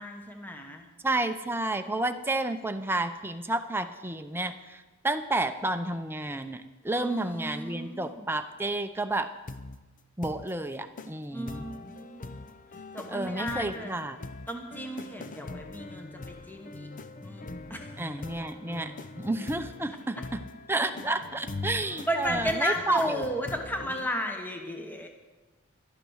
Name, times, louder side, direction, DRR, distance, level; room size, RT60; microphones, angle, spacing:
voice 1, 0.0-0.9 6.9-8.3 11.3-12.3 12.9-13.9 14.5-16.9 17.2-17.8 22.1-25.1, equal, 10° left, 3 dB, 1.2 m, -34 dB
voice 2, 1.0-9.3 10.2-11.7 13.1-14.2 18.0-20.4 20.7-23.3, right 2 dB, 10° right, 8 dB, 0.7 m, -31 dB
sound 1, 9.5-9.8 10.2-10.5 11.0-11.1 11.5-24.1, left 3 dB, 40° left, 0.6 m, -42 dB
12.0 x 11.0 x 6.4 m, 1.2 s
head